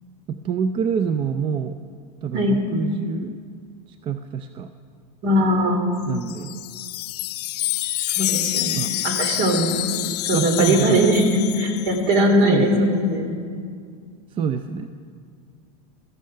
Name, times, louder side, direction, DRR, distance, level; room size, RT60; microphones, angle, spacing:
voice 1, 0.3-1.8 2.2-3.4 4.0-4.7 6.1-6.6 8.7-8.9 10.3-11.1 12.4-12.9 14.3-14.9, right 7 dB, 25° right, 9 dB, 0.4 m, -26 dB
voice 2, 5.2-5.8 8.2-8.8 9.0-9.8 10.2-13.3, equal, 50° right, 4 dB, 3.0 m, -20 dB
Wind chime, 6.0-12.2, left 16 dB, 85° left, 0.5 m, -27 dB
17.0 x 13.5 x 5.6 m, 2.2 s
supercardioid pair, 140°, 20 cm